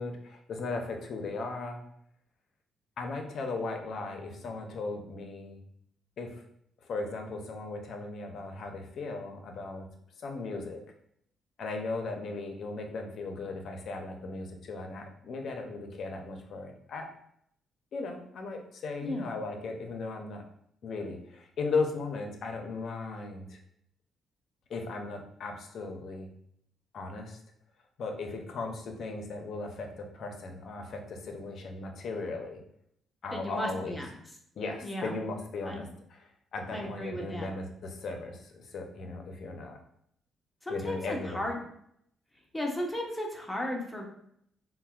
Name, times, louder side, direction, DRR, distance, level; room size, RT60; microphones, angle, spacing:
voice 1, 0.0-1.8 3.0-5.6 6.2-6.4 6.9-9.9 10.2-10.8 11.6-17.1 17.9-20.4 20.8-23.6 24.7-26.3 26.9-27.4 28.0-32.6 33.2-34.0 34.6-39.8 40.7-41.4, left 3 dB, 60° left, 3 dB, 0.5 m, -37 dB
voice 2, 33.3-34.1 34.8-35.2 35.7-35.8 36.7-37.5 40.6-41.6 42.5-44.1, left 1 dB, 10° left, 0 dB, 0.7 m, -35 dB
4.1 x 2.1 x 2.3 m, 0.71 s
cardioid pair, 90°, 0 cm